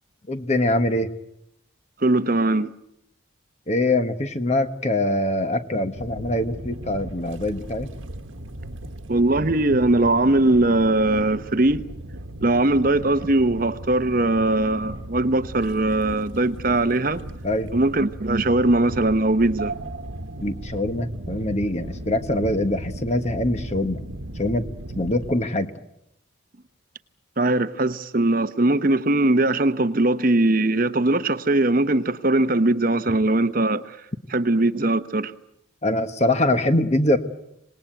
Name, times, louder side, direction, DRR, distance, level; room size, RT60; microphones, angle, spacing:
voice 1, 0.3-1.1 3.7-7.9 17.4-17.7 20.4-24.1 24.4-24.6 25.0-25.7 35.8-37.2, left 1 dB, 35° left, 1.3 m, -23 dB
voice 2, 2.0-2.7 9.1-11.8 12.4-17.2 17.7-19.7 27.4-34.0 34.3-35.3, right 2 dB, 45° right, 0.9 m, -20 dB
sound 1, 5.9-25.4, right 1 dB, 75° right, 1.4 m, -36 dB
26.5 x 19.5 x 9.1 m
head